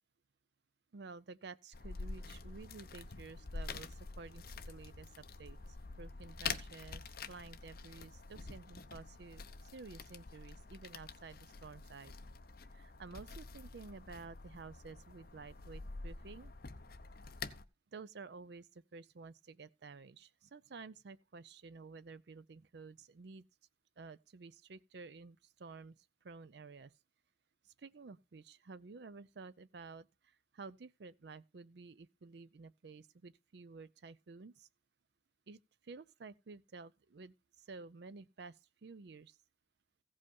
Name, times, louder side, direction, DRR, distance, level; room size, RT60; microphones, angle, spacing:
voice 1, 0.9-12.1 12.7-16.5 17.9-23.4 24.0-26.9 27.6-34.7 35.5-39.4, right 4 dB, 60° right, 0.5 m, -52 dB
sound 1, 1.7-17.6, left 4 dB, 50° left, 0.8 m, -47 dB
15.5 x 5.4 x 5.3 m
head